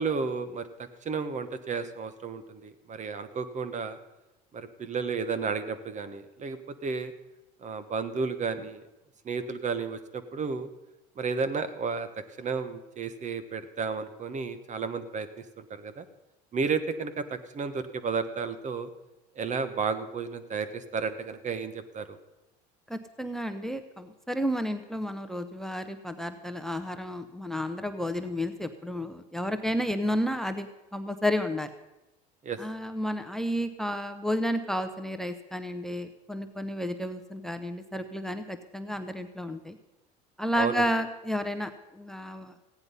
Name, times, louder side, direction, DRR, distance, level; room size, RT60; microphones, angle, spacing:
voice 1, 0.0-4.0 4.5-7.1 7.6-8.8 9.2-10.7 11.2-12.1 12.4-16.0 16.5-18.9 19.3-22.2 32.4-32.6 40.6-40.9, right 5 dB, 35° right, 12 dB, 1.2 m, -32 dB
voice 2, 22.9-31.7 32.6-39.8 40.4-42.5, equal, ahead, 10 dB, 0.8 m, -31 dB
15.5 x 9.8 x 5.5 m, 1.0 s
supercardioid pair, 90°, 20 cm